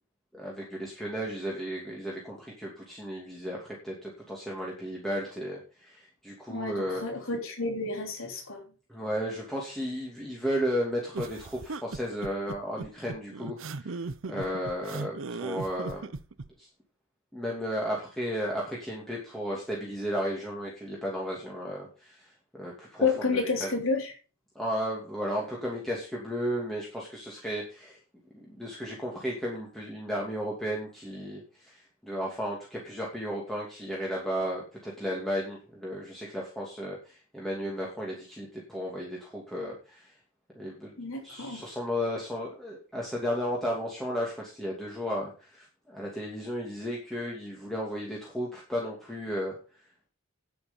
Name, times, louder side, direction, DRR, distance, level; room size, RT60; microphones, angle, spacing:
voice 1, 0.3-7.0 8.9-16.1 16.6-16.7 17.3-23.1 23.6-23.7 24.5-28.0 28.5-40.1 40.5-40.9 41.2-49.5, equal, ahead, -4 dB, 2.8 m, -34 dB
voice 2, 6.5-8.6 23.0-24.1 41.0-41.6, left 4 dB, 75° left, 2 dB, 3.5 m, -30 dB
sound 1, 11.1-16.5, right 3 dB, 65° right, 0.7 m, -37 dB
9.7 x 9.6 x 5.4 m, 0.35 s
head